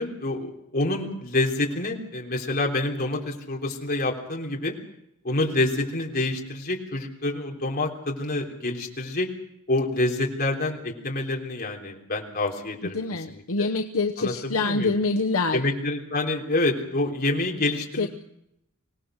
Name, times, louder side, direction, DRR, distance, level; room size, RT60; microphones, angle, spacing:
voice 1, 0.0-4.7 5.2-9.3 9.7-13.0 13.3-13.7 14.2-14.9 15.5-18.1, left 2 dB, 45° left, 0 dB, 3.6 m, -27 dB
voice 2, 12.9-15.6 18.0-18.1, left 3 dB, 70° left, 4 dB, 1.0 m, -25 dB
25.0 x 18.0 x 6.4 m, 0.80 s
head